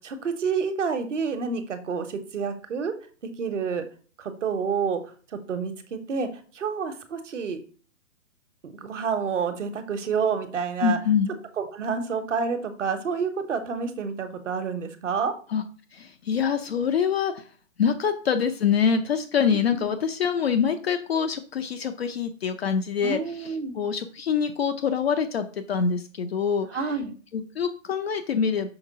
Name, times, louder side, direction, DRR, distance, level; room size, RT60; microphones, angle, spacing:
voice 1, 0.0-2.9 3.2-3.8 4.2-5.0 5.3-6.3 6.5-7.6 8.6-11.0 11.6-15.3 19.7-19.9 23.0-23.8 26.7-27.1, right 5 dB, 60° right, 8 dB, 1.3 m, -28 dB
voice 2, 10.8-11.3 15.5-15.6 15.9-17.4 17.8-26.7 27.3-28.7, left 7 dB, 50° left, 7 dB, 0.7 m, -25 dB
5.9 x 3.5 x 5.3 m, 0.40 s
hypercardioid pair, 145°, 40 cm